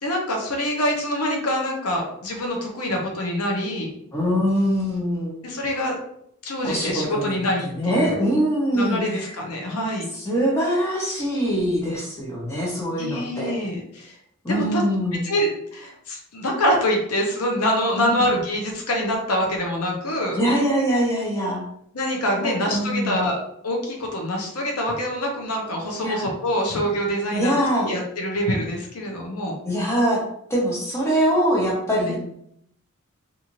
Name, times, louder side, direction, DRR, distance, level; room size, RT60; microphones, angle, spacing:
voice 1, 0.0-3.9 5.4-6.0 6.4-8.2 8.7-10.1 13.0-14.1 14.5-14.8 15.2-20.4 21.9-23.4 23.6-27.5 27.8-29.6 32.1-32.2, equal, 80° left, 1 dB, 0.7 m, -25 dB
voice 2, 4.1-5.3 6.6-9.2 10.1-13.5 14.4-15.2 18.0-18.2 20.4-21.6 22.7-23.2 26.0-26.3 27.3-27.9 29.6-30.2 30.5-32.2, equal, 10° left, -5 dB, 0.8 m, -23 dB
2.6 x 2.5 x 2.9 m, 0.71 s
head